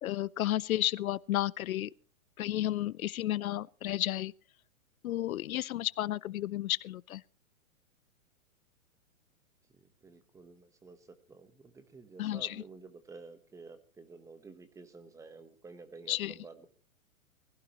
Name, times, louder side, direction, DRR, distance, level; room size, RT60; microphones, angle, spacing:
voice 1, 0.0-1.9 2.4-4.3 5.0-7.2 12.2-12.6 16.1-16.3, left 14 dB, 75° left, 0.6 m, -32 dB
voice 2, 9.7-16.7, right 4 dB, 5° right, 1.0 m, -51 dB
20.5 x 16.0 x 3.0 m
hypercardioid pair, 150°, 42 cm